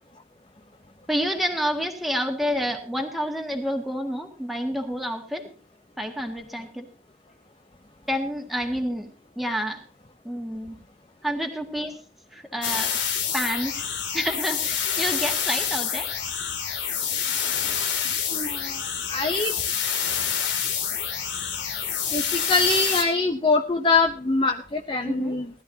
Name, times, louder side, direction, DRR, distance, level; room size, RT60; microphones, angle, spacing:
voice 1, 1.1-5.5 6.0-6.9 8.1-9.8 10.2-10.8 11.2-12.0 12.3-12.9 13.3-13.8 14.1-16.1 17.3-17.4 17.6-18.1 25.0-25.3, equal, ahead, 2 dB, 1.9 m, -29 dB
sound 1, 12.6-23.0, left 8 dB, 85° left, 2.7 m, -27 dB
voice 2, 18.3-19.5 22.1-25.5, left 3 dB, 25° left, 5 dB, 0.7 m, -24 dB
19.0 x 12.5 x 2.8 m, 0.36 s
head